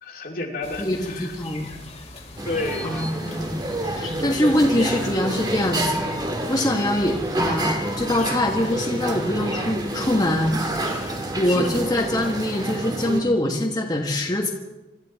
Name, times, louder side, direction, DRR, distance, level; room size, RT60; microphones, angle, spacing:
voice 1, 0.0-1.3 2.4-3.1, left 2 dB, 55° left, 1 dB, 2.3 m, -30 dB
sound 1, 0.6-12.5, left 3 dB, 40° left, 2.1 m, -41 dB
voice 2, 0.8-1.8 2.8-3.6 3.9-6.0 6.5-10.8 11.3-14.5, left 1 dB, 25° left, 0 dB, 1.5 m, -24 dB
sound 2, 2.4-13.2, right 1 dB, 25° right, 1.8 m, -28 dB
26.0 x 13.0 x 4.1 m, 1.0 s
head